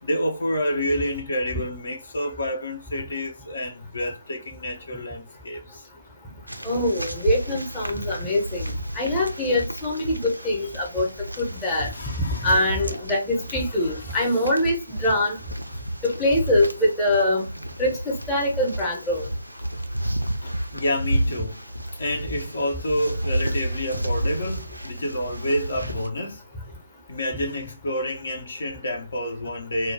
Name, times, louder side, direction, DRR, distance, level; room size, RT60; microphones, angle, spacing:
voice 1, 0.0-5.8 11.0-11.1 11.7-13.1 13.8-14.2 19.6-19.7 20.4-21.6 22.0-26.4 27.1-29.9, equal, 55° left, 0.6 m, -29 dB
sound 1, 6.5-26.1, right 1 dB, 90° right, 0.4 m, -32 dB
voice 2, 6.6-11.1 11.4-11.9 12.4-15.4 16.0-17.5 17.8-19.2, left 1 dB, 10° left, 0.8 m, -23 dB
2.3 x 2.2 x 3.2 m
figure-of-eight pair, 145°, 0 cm